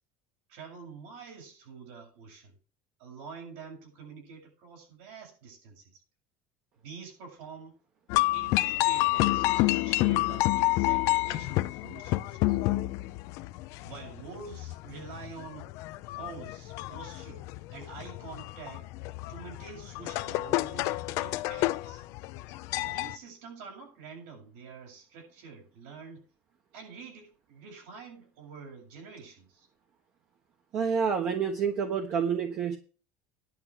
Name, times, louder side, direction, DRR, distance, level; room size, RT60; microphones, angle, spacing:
voice 1, 0.5-2.5 3.0-6.0 6.8-7.7 8.3-12.6 13.8-15.7 16.2-17.5 17.7-18.9 19.3-22.0 22.7-26.2 26.7-29.7, right 5 dB, 75° right, 7.5 m, -47 dB
sound 1, 8.1-23.2, left 19 dB, 55° left, 0.6 m, -29 dB
voice 2, 30.7-32.8, right 6 dB, 35° right, 1.3 m, -28 dB
11.0 x 5.7 x 7.9 m
cardioid pair, 170°, 6 cm